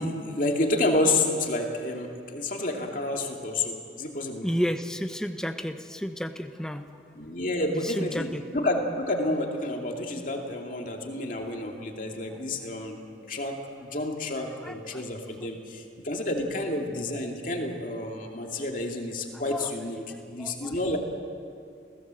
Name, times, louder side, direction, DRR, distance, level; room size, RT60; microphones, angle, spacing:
voice 1, 0.0-4.5 7.1-8.3 8.5-20.0 20.3-21.0, left 2 dB, 45° left, 1 dB, 2.6 m, -29 dB
voice 2, 4.4-6.8 7.7-8.4 14.5-15.0 19.5-19.7 20.0-20.8, equal, 5° left, 6 dB, 1.0 m, -32 dB
30.0 x 17.0 x 7.8 m, 2.4 s
head